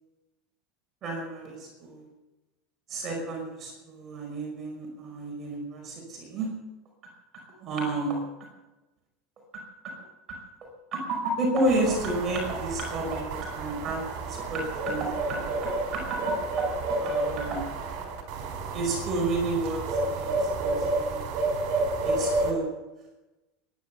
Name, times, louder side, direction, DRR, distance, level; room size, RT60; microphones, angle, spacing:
voice 1, 1.0-2.0 2.9-6.5 7.6-8.2 10.9-16.3 16.9-17.7 18.7-21.2 22.0-22.7, right 2 dB, 25° right, 1 dB, 5.1 m, -31 dB
sound 1, 11.6-22.5, right 2 dB, 50° right, 4.5 m, -30 dB
17.5 x 11.0 x 7.0 m, 1.0 s
supercardioid pair, 175°, 0 cm